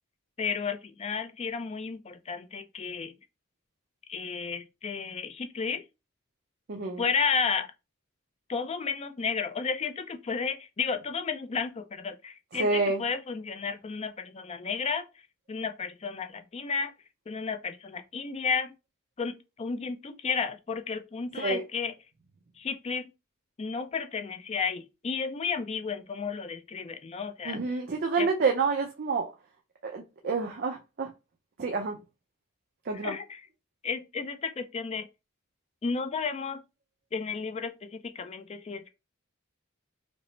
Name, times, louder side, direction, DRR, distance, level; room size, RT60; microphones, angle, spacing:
voice 1, 0.4-3.1 4.1-5.8 7.0-7.7 8.5-15.1 15.5-16.9 17.3-18.7 19.2-21.9 22.6-23.1 23.6-27.8 28.2-28.3 32.9-33.5 33.8-35.1 35.8-36.6 37.1-38.9, left 5 dB, 30° left, 0.4 m, -32 dB
voice 2, 6.7-7.0 12.6-13.0 21.4-21.6 27.5-29.3 29.8-31.1 31.6-31.9 32.9-33.1, right 4 dB, 50° right, 0.5 m, -28 dB
5.0 x 2.0 x 3.2 m
head